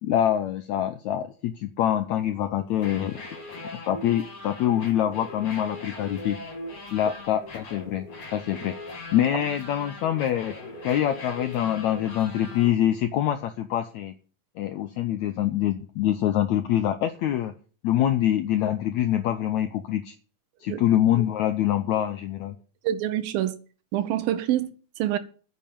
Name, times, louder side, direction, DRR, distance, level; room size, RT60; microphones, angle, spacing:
voice 1, 0.0-3.2 3.7-6.4 6.9-8.1 8.3-8.8 9.1-10.6 10.8-14.1 14.6-17.5 17.8-20.1 20.6-22.5, left 11 dB, 80° left, 1.6 m, -25 dB
sound 1, 2.7-12.7, left 2 dB, 45° left, 3.9 m, -40 dB
voice 2, 22.8-23.5 23.9-25.2, right 12 dB, 80° right, 2.7 m, -26 dB
9.7 x 7.3 x 8.7 m
omnidirectional pair, 4.1 m